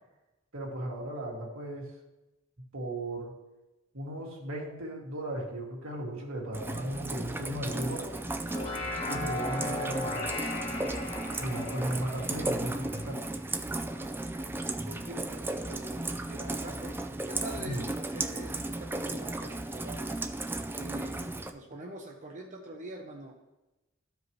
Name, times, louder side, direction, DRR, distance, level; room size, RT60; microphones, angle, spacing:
voice 1, 0.5-1.9 2.7-3.3 3.9-8.1 9.1-10.3 11.4-13.2 17.6-17.8, right 1 dB, 80° right, -2 dB, 2.1 m, -36 dB
Rain, 6.5-21.5, right 2 dB, 10° right, 0.4 m, -35 dB
sound 1, 8.3-13.9, left 2 dB, 30° left, 1.1 m, -38 dB
voice 2, 14.9-16.9 17.3-20.2 20.7-21.2 21.5-23.3, right 2 dB, 40° right, 0 dB, 0.7 m, -44 dB
12.5 x 5.0 x 3.1 m, 1.0 s
head